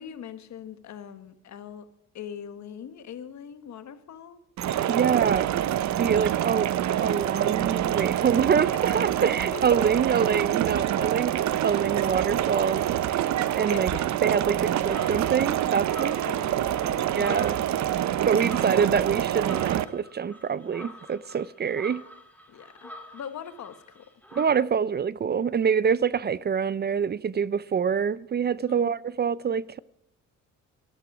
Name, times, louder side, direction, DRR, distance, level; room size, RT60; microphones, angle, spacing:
voice 1, 0.0-1.9 2.1-4.4 8.9-9.1 9.5-9.9 13.7-14.0 16.3-17.6 18.2-18.3 22.5-24.0 28.7-28.9, left 8 dB, 65° left, 1.5 m, -41 dB
sound 1, 4.6-19.8, right 12 dB, 65° right, 0.7 m, -26 dB
voice 2, 4.9-5.5 6.0-6.7 7.0-11.4 11.6-12.9 13.1-13.9 14.2-16.2 17.1-17.6 18.3-22.0 24.3-29.8, right 7 dB, 35° right, 0.5 m, -26 dB
sound 2, 14.9-24.5, left 1 dB, 5° left, 2.7 m, -46 dB
13.0 x 13.0 x 4.9 m
cardioid pair, 90°, 30 cm